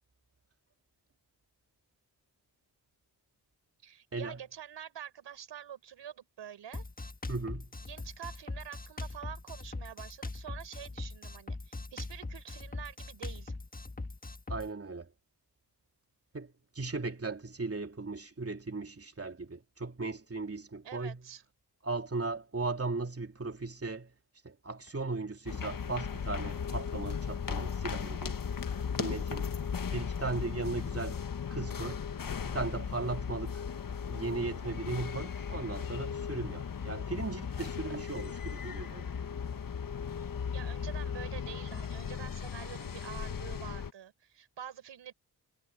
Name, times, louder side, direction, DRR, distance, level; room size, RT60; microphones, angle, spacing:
voice 1, 3.8-6.9 7.8-13.5 20.8-21.4 29.7-30.1 40.5-45.1, right 9 dB, 90° right, 5.3 m, -47 dB
Drum kit, 6.7-14.7, left 2 dB, 20° left, 1.5 m, -41 dB
voice 2, 7.3-7.7 14.5-15.1 16.3-21.2 21.8-24.1 24.4-28.4 29.0-29.5 29.9-31.2 31.5-32.0 32.4-33.6 34.1-39.1, right 3 dB, 35° right, 3.2 m, -37 dB
sound 1, 25.5-43.9, left 7 dB, 50° left, 1.5 m, -37 dB
cardioid pair, 55°, 42 cm